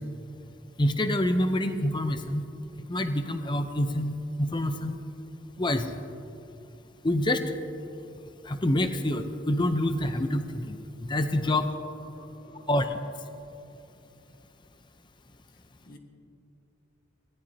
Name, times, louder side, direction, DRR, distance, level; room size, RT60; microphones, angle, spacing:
voice 1, 0.8-2.4 2.9-5.0 5.6-5.9 7.0-7.4 8.4-10.8 11.1-11.7 12.7-12.9, left 1 dB, 25° left, 8 dB, 0.7 m, -26 dB
voice 2, 11.3-12.7 15.5-16.0, left 2 dB, 45° left, 3 dB, 1.6 m, -53 dB
24.0 x 17.5 x 2.8 m, 2.7 s
head